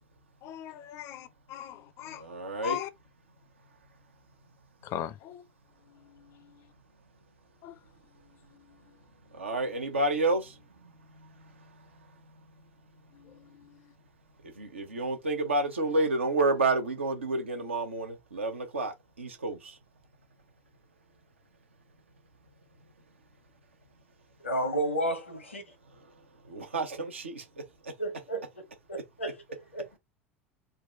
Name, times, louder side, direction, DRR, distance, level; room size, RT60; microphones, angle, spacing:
voice 1, 0.4-2.2 2.6-2.9 4.8-5.4 7.6-7.7 13.2-13.7, left 12 dB, 45° left, 0.5 m, -39 dB
voice 2, 2.2-2.8 9.3-10.6 11.2-11.3 14.6-19.8 26.5-27.4 27.8-27.9, right 2 dB, 75° right, 0.9 m, -29 dB
voice 3, 24.4-25.7 28.0-28.4 28.9-30.0, right 1 dB, 80° left, 1.0 m, -32 dB
3.9 x 2.2 x 3.4 m
figure-of-eight pair, 75°, 7 cm